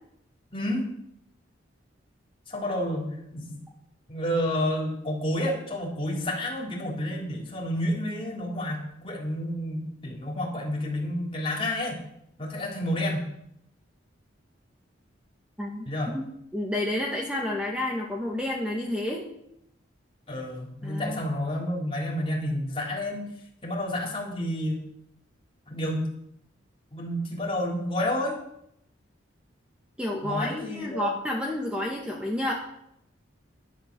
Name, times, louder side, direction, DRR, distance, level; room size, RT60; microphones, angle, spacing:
voice 1, 0.5-0.9 2.5-3.5 4.1-12.0 12.4-13.3 15.8-16.1 20.3-23.3 23.6-24.9 25.7-26.1 26.9-28.4 30.2-31.2, left 1 dB, 30° left, -3 dB, 3.7 m, -30 dB
voice 2, 15.6-15.9 16.1-16.3 16.5-19.2 20.8-21.2 30.0-32.5, left 1 dB, 5° right, -2 dB, 1.7 m, -30 dB
12.0 x 11.5 x 6.8 m, 0.77 s
head